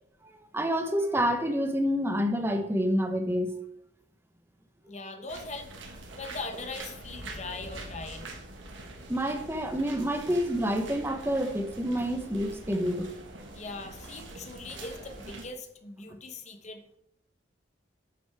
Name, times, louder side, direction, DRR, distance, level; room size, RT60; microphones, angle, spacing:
voice 1, 0.5-3.6 9.1-13.1, equal, 10° right, 6 dB, 0.8 m, -28 dB
voice 2, 4.9-5.7 6.2-8.2 13.5-16.8, left 3 dB, 35° left, 7 dB, 0.9 m, -40 dB
sound 1, 5.3-15.5, right 2 dB, 80° right, 1.5 m, -44 dB
10.0 x 6.1 x 3.5 m, 0.76 s
head